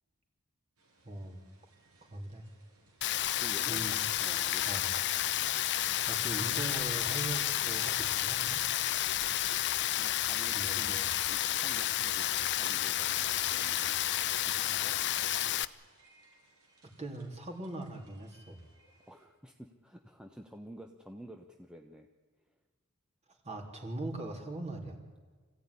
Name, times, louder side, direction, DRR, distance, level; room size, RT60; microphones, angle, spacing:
sound 1, 0.8-19.3, right 2 dB, 85° right, 6.0 m, -63 dB
voice 1, 1.0-1.4 2.1-2.5 3.6-4.0 4.6-4.9 6.0-8.6 10.5-11.1 17.0-18.6 23.4-25.0, right 2 dB, 30° right, 2 dB, 3.6 m, -40 dB
Rain, 3.0-15.6, left 12 dB, 55° left, 0.7 m, -31 dB
voice 2, 3.4-4.6 10.0-10.9 11.3-15.0 19.1-22.1, right 1 dB, 5° right, 3 dB, 1.0 m, -50 dB
25.5 x 15.5 x 9.9 m, 1.4 s
head